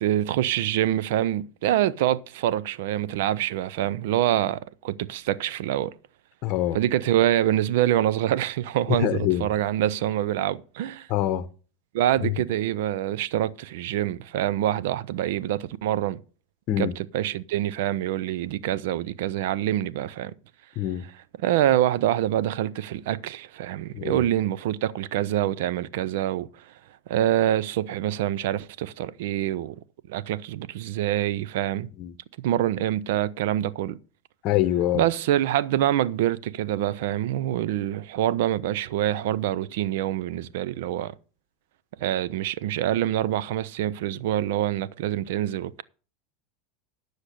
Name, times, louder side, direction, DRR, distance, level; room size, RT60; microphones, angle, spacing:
voice 1, 0.0-6.0 6.7-11.1 11.9-16.2 16.8-20.3 21.4-26.5 27.1-29.7 30.1-31.9 32.4-34.0 34.9-41.1 42.0-45.8, right 12 dB, 75° right, 0.5 m, -25 dB
voice 2, 6.4-6.8 8.9-9.5 11.1-11.5 12.2-12.4 16.7-16.9 20.8-21.0 23.9-24.2 32.0-32.1 34.4-35.1, left 13 dB, 55° left, 0.8 m, -25 dB
9.9 x 6.5 x 6.6 m
hypercardioid pair, 100°, 0 cm